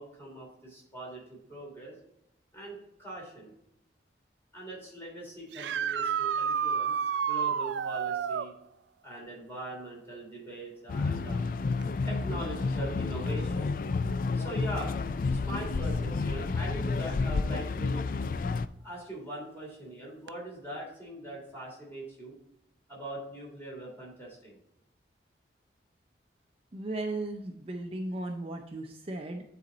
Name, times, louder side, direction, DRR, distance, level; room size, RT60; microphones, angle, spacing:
voice 1, 0.0-1.9 2.5-3.5 4.5-6.9 7.3-8.5 9.0-11.4 12.0-13.7 14.3-14.9 15.3-18.1 18.8-22.4 22.9-24.6, right 1 dB, 15° left, -4 dB, 3.0 m, -41 dB
sound 1, 5.5-8.5 11.8-11.9 14.0-14.1 20.3-20.4, right 7 dB, 85° right, 0.3 m, -30 dB
sound 2, 10.9-18.7, left 4 dB, 50° left, 0.3 m, -30 dB
voice 2, 26.7-29.4, right 2 dB, 35° right, 3 dB, 0.5 m, -36 dB
9.3 x 4.2 x 3.9 m, 0.81 s
head